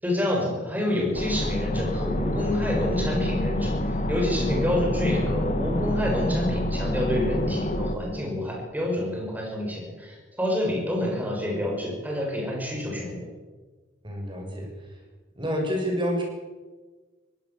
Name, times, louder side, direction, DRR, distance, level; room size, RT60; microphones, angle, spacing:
voice 1, 0.0-13.2, left 1 dB, 10° right, -1 dB, 7.1 m, -28 dB
sound 1, 1.1-8.0, left 1 dB, 40° left, 1.7 m, -27 dB
voice 2, 14.0-14.7 15.4-16.2, equal, 25° right, 1 dB, 7.3 m, -28 dB
21.5 x 17.5 x 7.6 m, 1.3 s
head